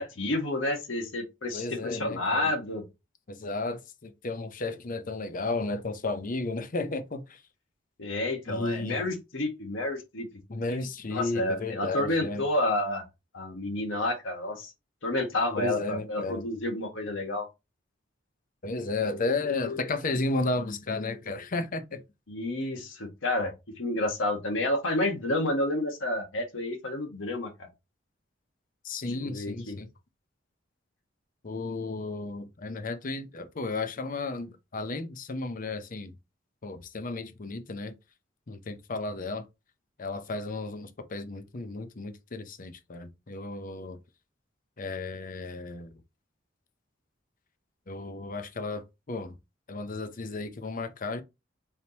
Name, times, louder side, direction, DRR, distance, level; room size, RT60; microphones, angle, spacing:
voice 1, 0.0-2.8 8.0-10.3 10.7-13.0 13.3-14.7 15.0-17.5 22.3-27.7 29.2-29.8, left 1 dB, 90° left, 1.5 m, -30 dB
voice 2, 1.5-2.5 3.3-7.4 8.5-9.1 10.5-12.4 15.6-16.4 18.6-22.0 28.8-29.9 31.4-36.1 36.6-37.9 38.5-39.4 40.0-44.0 44.8-46.0 47.9-49.4 49.7-51.2, left 3 dB, 45° left, 0.7 m, -33 dB
4.4 x 3.6 x 2.8 m
head